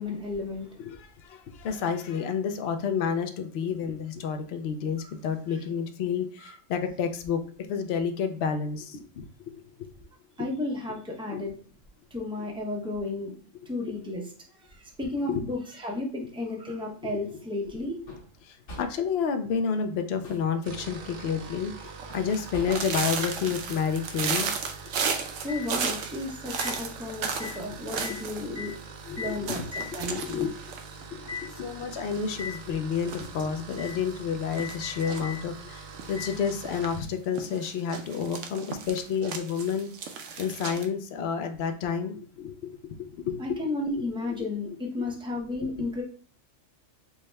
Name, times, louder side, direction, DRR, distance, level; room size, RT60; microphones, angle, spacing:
voice 1, 0.0-0.8 6.4-6.5 10.4-11.5 12.1-13.3 13.7-14.2 14.6-17.9 25.4-28.7 29.2-29.6 29.9-30.4 43.4-46.0, left 2 dB, 5° right, 0 dB, 0.4 m, -33 dB
voice 2, 0.8-9.5 11.3-11.4 15.3-15.4 17.0-17.1 18.4-24.5 28.0-28.2 29.1-29.6 30.0-30.5 31.1-39.9 40.4-43.7 43.9-44.4 44.7-44.8, left 6 dB, 65° left, 7 dB, 0.7 m, -30 dB
sound 1, 18.1-18.4 18.7-19.1 20.0-20.6 22.1-23.0 25.5-25.7 26.6-26.8 27.4-27.6 28.0-28.2 28.5-28.8 29.2-29.4 29.7-30.0 30.7-30.8 31.3-31.5 32.3-32.6 33.8-34.0 34.6-35.4 36.1-36.4 37.2-37.3, left 5 dB, 80° left, 1.4 m, -39 dB
sound 2, 20.6-37.1, right 5 dB, 55° right, 0.5 m, -44 dB
sound 3, 22.0-28.4 28.7-28.8 29.0-29.1 29.5-31.5 31.9-32.5 32.9-33.9 34.5-35.4 35.9-36.9 37.3-40.8, right 6 dB, 75° right, 0.9 m, -34 dB
4.7 x 2.1 x 3.2 m, 0.43 s
omnidirectional pair, 1.3 m